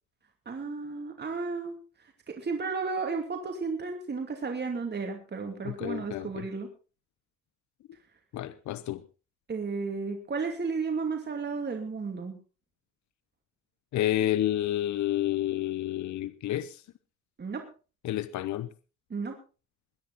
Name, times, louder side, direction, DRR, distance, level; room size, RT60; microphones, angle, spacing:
voice 1, 0.5-1.7 2.3-6.7 9.5-12.4 17.4-17.6 19.1-19.3, right 4 dB, 35° right, 2.7 m, -33 dB
voice 2, 5.6-6.5 8.3-9.0 13.9-16.8 18.0-18.7, left 13 dB, 70° left, 0.8 m, -30 dB
22.0 x 10.0 x 4.1 m
cardioid pair, 90°, 30 cm